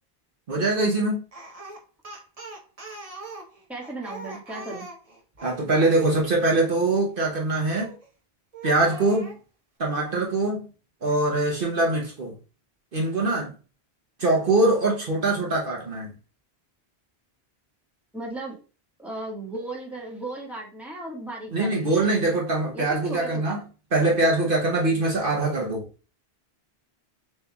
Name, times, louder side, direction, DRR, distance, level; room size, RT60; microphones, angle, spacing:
voice 1, 0.5-1.2 5.4-7.9 8.6-9.4 9.8-10.6 11.0-12.3 12.9-13.5 14.2-16.1 21.5-23.6 23.9-25.9, right 2 dB, 55° right, 1.1 m, -23 dB
Speech, 1.3-5.6 7.6-8.1 8.5-9.4, right 1 dB, 35° right, 1.0 m, -41 dB
voice 2, 3.7-4.9 18.1-18.6 19.0-21.8 22.7-23.6, right 2 dB, ahead, 1.6 m, -35 dB
6.7 x 3.5 x 2.3 m
omnidirectional pair, 1.1 m